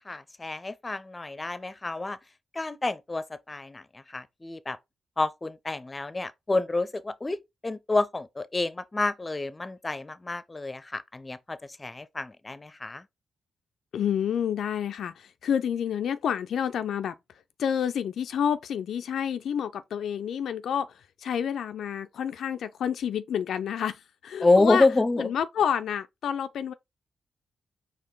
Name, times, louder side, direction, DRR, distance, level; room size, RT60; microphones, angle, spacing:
voice 1, 0.0-2.2 2.5-4.8 5.2-7.4 7.6-13.0 24.4-25.3, left 2 dB, 30° left, 0.6 m, -28 dB
voice 2, 13.9-26.7, left 8 dB, 75° left, 0.3 m, -29 dB
4.5 x 2.9 x 3.7 m
supercardioid pair, 45°, 0 cm